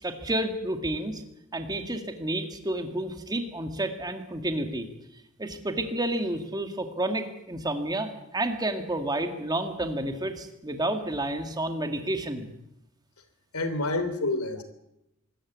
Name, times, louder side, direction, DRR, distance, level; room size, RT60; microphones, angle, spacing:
voice 1, 0.0-1.2 1.5-4.9 5.4-12.5, right 1 dB, 20° right, 6 dB, 2.1 m, -30 dB
voice 2, 13.5-14.6, left 2 dB, 80° left, 9 dB, 3.1 m, -28 dB
24.5 x 14.0 x 8.5 m, 0.85 s
head